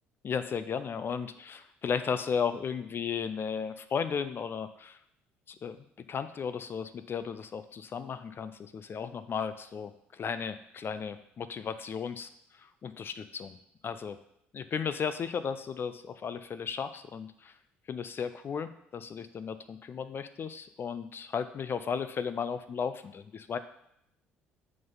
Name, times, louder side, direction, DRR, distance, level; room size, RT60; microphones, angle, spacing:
voice 1, 0.2-5.0 5.5-5.8 6.1-12.3 12.8-13.6 13.8-14.2 14.5-17.5 17.9-23.6, left 6 dB, 40° left, 12 dB, 0.5 m, -35 dB
7.5 x 5.8 x 4.0 m, 0.75 s
hypercardioid pair, 55°, 6 cm